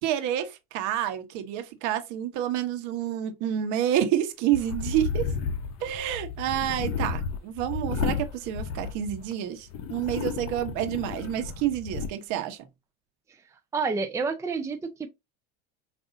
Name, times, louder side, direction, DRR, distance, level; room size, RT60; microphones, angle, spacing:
voice 1, 0.0-5.3 5.8-12.6, right 11 dB, 65° right, 1.0 m, -29 dB
sound 1, 4.5-9.3 9.7-12.1, left 6 dB, 55° left, 0.9 m, -32 dB
voice 2, 13.7-15.1, right 4 dB, 10° right, 0.5 m, -29 dB
5.1 x 2.6 x 2.6 m
supercardioid pair, 105°, 32 cm